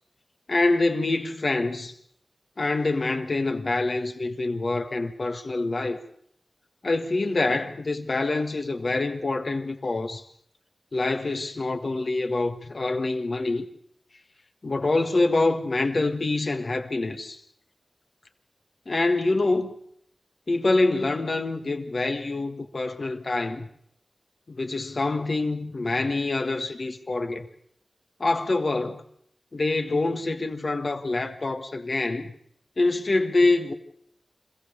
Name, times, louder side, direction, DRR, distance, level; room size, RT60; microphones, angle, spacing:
voice 1, 0.5-1.9 2.6-6.0 6.8-10.2 10.9-13.7 14.6-17.4 18.9-19.7 20.5-23.7 24.5-27.5 28.2-29.0 29.5-32.3 32.8-33.7, left 2 dB, 60° left, 1.6 m, -25 dB
26.0 x 15.0 x 6.8 m
wide cardioid pair, 65°, 0 cm